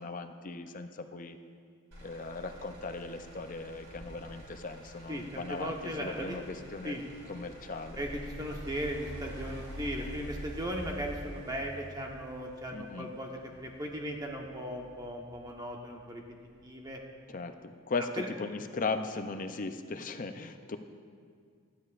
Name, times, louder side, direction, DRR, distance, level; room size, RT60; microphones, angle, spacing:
voice 1, 0.0-1.4 2.0-7.0 7.3-8.0 12.7-13.1 17.3-20.8, left 3 dB, 35° left, 8 dB, 0.5 m, -38 dB
Motor vehicle (road), 1.9-15.9 16.4-16.9, right 1 dB, 85° right, 3.1 m, -47 dB
voice 2, 5.1-6.4 6.8-7.0 8.0-16.2 16.6-17.0 18.2-18.3, equal, 15° right, 0 dB, 1.0 m, -37 dB
18.0 x 13.0 x 2.5 m, 2.1 s
head